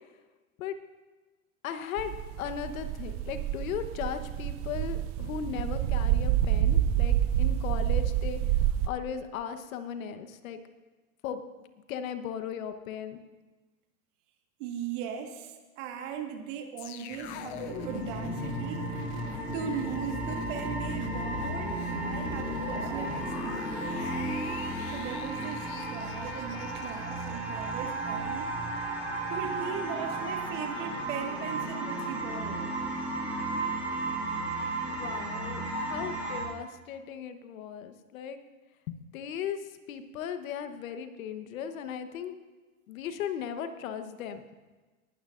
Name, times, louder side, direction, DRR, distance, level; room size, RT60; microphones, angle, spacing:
voice 1, 1.6-10.6 11.2-11.4 11.9-13.2 25.4-25.5 34.8-38.4 38.9-42.4 42.9-44.4, left 8 dB, 70° left, 9 dB, 1.2 m, -37 dB
sound 1, 2.0-8.9, right 11 dB, 35° right, 0.5 m, -28 dB
voice 2, 14.6-18.9 19.5-24.1 24.9-28.6 29.3-32.7, right 7 dB, 60° right, 5 dB, 1.8 m, -38 dB
sound 2, 16.8-28.0 28.3-28.4, left 11 dB, 50° left, 0.7 m, -42 dB
sound 3, 17.1-36.4, right 2 dB, 5° right, 3.8 m, -34 dB
19.0 x 12.0 x 2.5 m, 1.3 s
hypercardioid pair, 115°, 42 cm